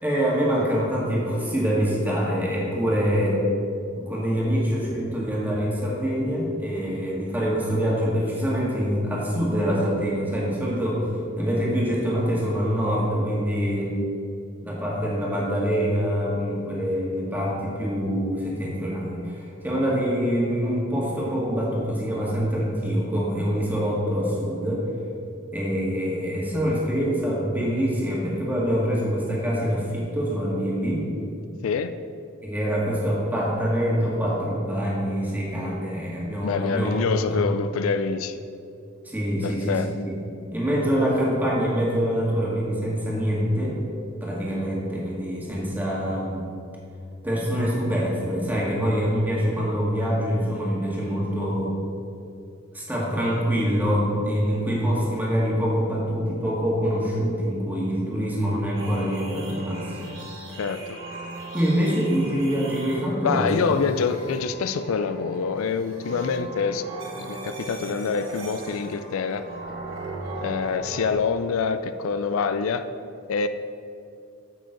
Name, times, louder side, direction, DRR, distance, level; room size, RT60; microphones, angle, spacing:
voice 1, 0.0-3.4 4.0-11.1 11.4-13.9 14.6-24.8 25.5-31.1 32.4-36.9 37.3-37.4 39.0-40.1 40.5-43.8 44.2-46.5 47.2-51.7 52.7-60.1 60.5-60.6 61.5-63.7, equal, 10° right, -5 dB, 1.8 m, -25 dB
voice 2, 31.6-32.0 36.4-38.4 39.4-39.9 60.6-61.0 63.2-66.9 67.2-69.4 70.4-72.8 73.3-73.5, left 5 dB, 85° left, 11 dB, 0.4 m, -26 dB
sound 1, 58.7-71.1, right 2 dB, 65° right, 1.6 m, -38 dB
9.0 x 7.6 x 3.9 m, 2.5 s
head